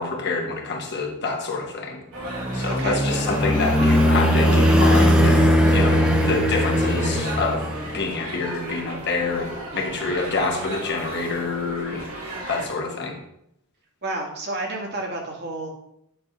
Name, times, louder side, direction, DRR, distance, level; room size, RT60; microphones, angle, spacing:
voice 1, 0.0-2.0 2.5-7.7 7.9-13.2, left 3 dB, 50° left, 2 dB, 1.4 m, -27 dB
sound 1, 2.1-12.7, right 2 dB, 75° right, 2.5 m, -35 dB
sound 2, 2.3-8.1, equal, 5° right, 0.9 m, -19 dB
voice 2, 2.7-3.1 14.0-15.7, right 2 dB, 50° right, 0 dB, 1.8 m, -30 dB
9.4 x 3.5 x 5.6 m, 0.76 s
head